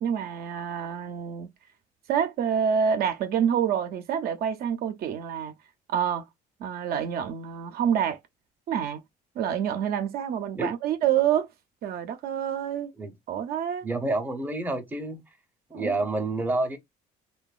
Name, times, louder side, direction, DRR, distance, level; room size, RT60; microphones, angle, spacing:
voice 1, 0.0-1.5 2.1-5.5 5.9-6.2 6.6-8.2 8.7-9.0 9.4-11.5 11.8-12.9 13.3-13.9 15.7-16.0, right 8 dB, 65° right, 0.5 m, -27 dB
voice 2, 13.8-15.2 15.7-16.8, right 2 dB, 10° right, 0.6 m, -28 dB
2.9 x 2.2 x 2.3 m
cardioid pair, 110°, 17 cm